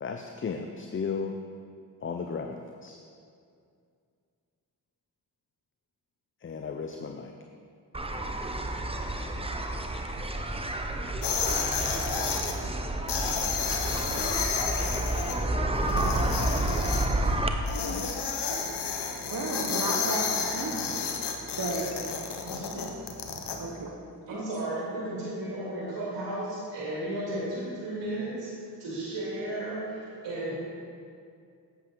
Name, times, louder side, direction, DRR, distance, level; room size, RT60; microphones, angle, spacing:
voice 1, 0.0-1.4 2.0-3.0 6.4-7.3, left 5 dB, 30° left, 5 dB, 0.6 m, -34 dB
sound 1, 7.9-17.5, right 1 dB, 15° right, 0.8 m, -30 dB
sound 2, 11.2-12.5 13.1-15.3 15.9-17.1 17.7-23.6, left 5 dB, 70° left, 1.0 m, -31 dB
Snare drum, 13.3-14.0 14.5-15.2 15.7-17.6, right 3 dB, 75° right, 1.1 m, -49 dB
voice 2, 19.3-20.9 21.6-21.9 22.7-22.9 23.6-23.9 24.3-24.4, right 2 dB, 50° right, 0 dB, 1.2 m, -33 dB
voice 3, 22.4-22.9 24.3-28.5 28.8-30.5, right 1 dB, 90° right, -7 dB, 2.3 m, -34 dB
8.2 x 7.8 x 3.8 m, 2.3 s
supercardioid pair, 40°, 42 cm